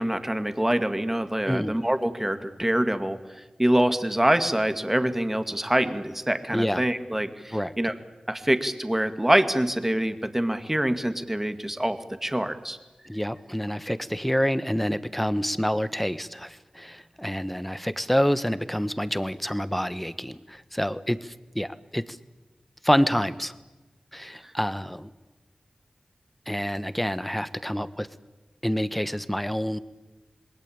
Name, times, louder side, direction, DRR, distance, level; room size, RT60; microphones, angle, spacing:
voice 1, 0.0-3.2 3.6-7.9 8.3-12.8 13.9-14.0 24.4-24.5, right 1 dB, 15° right, 9 dB, 2.1 m, -25 dB
voice 2, 13.1-22.2 22.8-23.5 24.1-25.1 26.5-28.1 28.6-29.8, equal, 5° left, 13 dB, 1.3 m, -27 dB
27.0 x 20.5 x 8.8 m, 1.1 s
wide cardioid pair, 55°, 2 cm